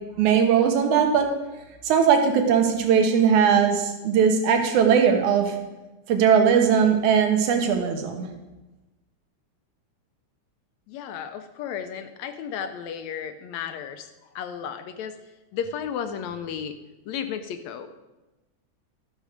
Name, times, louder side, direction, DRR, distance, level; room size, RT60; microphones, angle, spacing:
voice 1, 0.2-1.3 1.8-5.5 6.1-8.3, right 7 dB, 75° right, 4 dB, 2.5 m, -19 dB
voice 2, 10.9-15.2 15.5-16.8 17.1-17.9, left 8 dB, 80° left, 9 dB, 1.7 m, -33 dB
12.5 x 6.5 x 5.0 m, 1.1 s
omnidirectional pair, 3.6 m